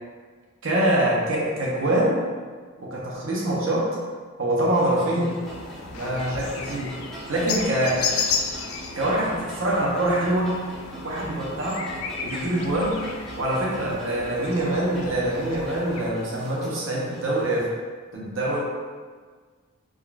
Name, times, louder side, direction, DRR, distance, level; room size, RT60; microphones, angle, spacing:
voice 1, 0.6-2.2 2.8-3.9 4.4-5.3 5.9-6.9 7.3-8.0 8.9-10.5 11.0-17.7 18.1-18.6, right 1 dB, 70° right, -5 dB, 0.7 m, -24 dB
sound 1, 4.6-17.7, right 1 dB, ahead, 0.5 m, -41 dB
sound 2, 5.4-16.1, left 5 dB, 85° left, 0.3 m, -34 dB
3.6 x 2.4 x 2.2 m, 1.5 s
head